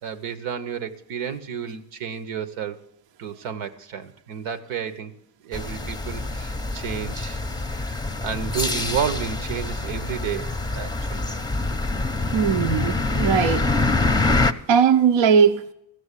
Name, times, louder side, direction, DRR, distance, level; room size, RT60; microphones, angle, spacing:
voice 1, 0.0-2.8 3.2-5.1 5.4-7.4 7.7-11.3, right 7 dB, 80° right, 1.0 m, -31 dB
sound 1, 5.5-14.5, left 3 dB, 10° left, 0.7 m, -25 dB
voice 2, 12.3-13.6 14.7-15.6, right 7 dB, 65° right, 0.7 m, -19 dB
15.0 x 6.5 x 8.2 m
supercardioid pair, 60°, 48 cm